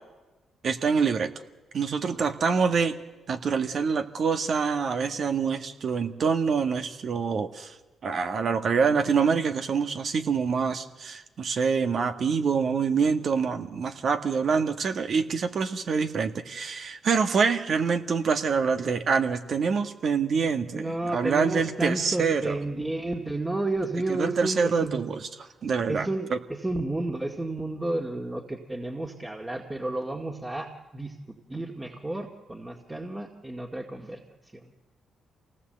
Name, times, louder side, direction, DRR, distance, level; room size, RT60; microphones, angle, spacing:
voice 1, 0.6-1.3 1.7-3.0 3.3-7.7 8.0-22.5 24.1-25.3 25.6-26.4, right 5 dB, 60° right, 6 dB, 1.7 m, -26 dB
voice 2, 20.7-25.0 25.9-31.2 31.5-34.2 34.5-34.7, right 2 dB, 20° right, 0 dB, 2.2 m, -31 dB
26.5 x 18.5 x 8.0 m, 1.2 s
supercardioid pair, 60°, 0 cm